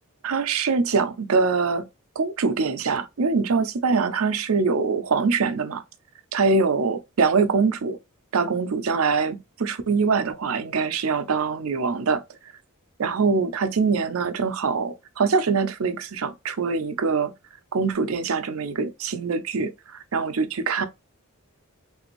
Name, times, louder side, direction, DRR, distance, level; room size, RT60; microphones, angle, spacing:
voice 1, 0.2-1.8 2.2-5.8 6.3-8.0 8.3-12.2 13.0-17.3 17.7-20.9, right 4 dB, 70° right, 0.6 m, -23 dB
3.4 x 2.5 x 3.0 m
head